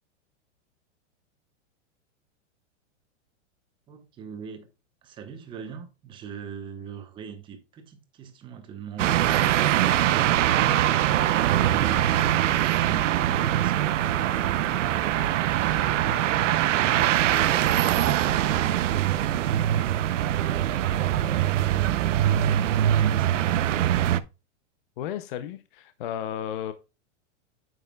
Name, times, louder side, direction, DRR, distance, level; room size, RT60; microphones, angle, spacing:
voice 1, 3.9-4.7 5.0-10.7 21.6-23.6, right 7 dB, 15° right, 0.8 m, -43 dB
sound 1, 9.0-24.2, right 12 dB, 80° right, 0.7 m, -23 dB
voice 2, 25.0-26.7, left 10 dB, 45° left, 0.6 m, -33 dB
9.0 x 6.5 x 2.3 m
supercardioid pair, 165°, 37 cm